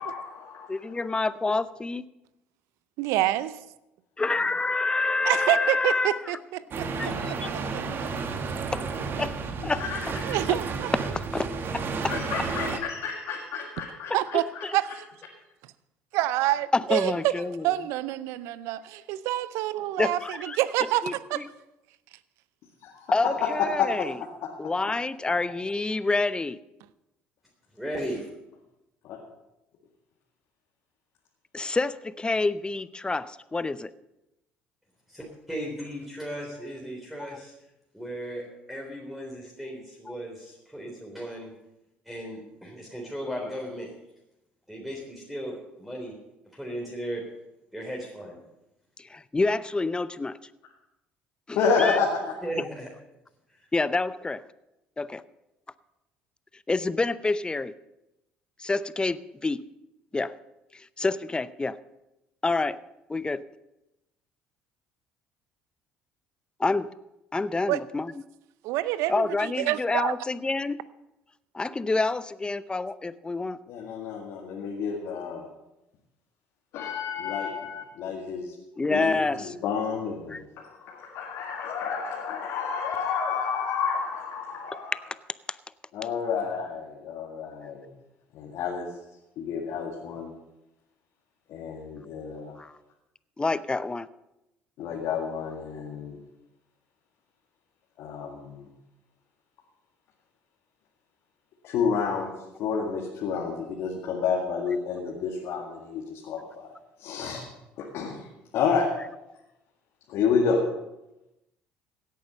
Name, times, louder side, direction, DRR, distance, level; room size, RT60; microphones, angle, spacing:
voice 1, 0.0-1.0 7.1-7.2 9.8-10.0 12.1-14.6 22.8-23.1 23.8-23.9 29.0-29.2 51.6-52.2 73.7-75.5 76.7-78.5 78.9-85.0 85.9-87.9 88.3-88.9 89.4-90.3 91.5-92.6 94.8-96.2 98.0-98.7 101.6-102.3 102.6-106.7 107.0-107.4 107.8-108.3 108.5-108.9 110.1-110.6, left 6 dB, 65° left, -1 dB, 2.0 m, -30 dB
voice 2, 0.7-2.0 4.2-6.3 7.0-7.5 8.7-8.9 9.2-9.3 9.6-9.8 10.5-10.6 11.1-11.5 11.7-12.1 14.1-14.8 16.7-17.7 20.0-20.6 21.0-21.5 23.1-24.2 24.6-26.6 31.5-33.9 37.2-37.4 40.1-40.2 49.0-50.4 51.5-52.0 52.6-52.7 53.7-54.4 55.0-55.2 56.7-57.7 58.6-59.6 60.1-60.3 60.7-61.8 62.4-62.8 63.1-63.4 66.6-66.9 67.3-68.1 69.1-70.8 71.5-73.6 78.8-79.5 80.3-80.4 92.6-92.7 93.4-94.1, left 3 dB, 20° left, 17 dB, 0.6 m, -28 dB
voice 3, 3.0-3.6 5.3-7.4 7.7-8.1 10.3-10.9 14.1-14.5 14.7-15.0 16.1-17.3 17.6-21.4 67.7-67.8 68.6-70.1, right 15 dB, 70° right, 17 dB, 0.6 m, -27 dB
sound 1, 6.7-12.8, right 4 dB, 45° right, 1.5 m, -32 dB
voice 4, 27.7-28.3 35.1-37.5 37.9-41.5 42.1-43.9 44.7-46.1 46.5-47.2 47.7-48.4 52.4-52.9 53.6-53.7, equal, ahead, -2 dB, 3.6 m, -36 dB
16.5 x 9.3 x 5.4 m, 0.92 s
hypercardioid pair, 60°, 5 cm